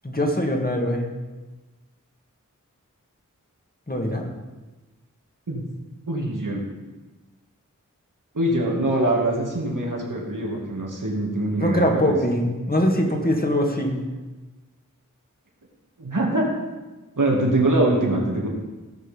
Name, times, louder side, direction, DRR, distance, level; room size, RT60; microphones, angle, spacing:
voice 1, 0.0-1.1 3.9-4.3 11.6-14.0, equal, 30° left, 1 dB, 2.2 m, -22 dB
voice 2, 6.1-6.6 8.3-12.2 16.0-16.5 17.2-18.5, right 1 dB, 70° right, -2 dB, 2.4 m, -23 dB
16.5 x 6.4 x 5.4 m, 1.2 s
wide cardioid pair, 50°, 32 cm